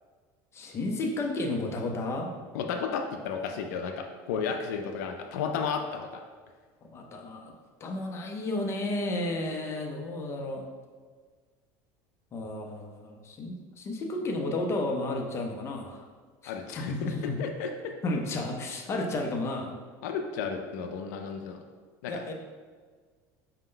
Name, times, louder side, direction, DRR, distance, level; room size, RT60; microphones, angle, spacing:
voice 1, 0.5-2.3 6.9-7.5 7.8-10.6 12.3-16.0 16.4-17.4 18.0-19.8 22.1-22.3, left 2 dB, 30° left, 1 dB, 0.6 m, -32 dB
voice 2, 2.5-6.2 16.5-17.1 17.4-17.9 20.0-21.6 22.0-22.1, left 6 dB, 90° left, 4 dB, 0.4 m, -33 dB
5.0 x 2.2 x 3.7 m, 1.5 s
supercardioid pair, 125°, 9 cm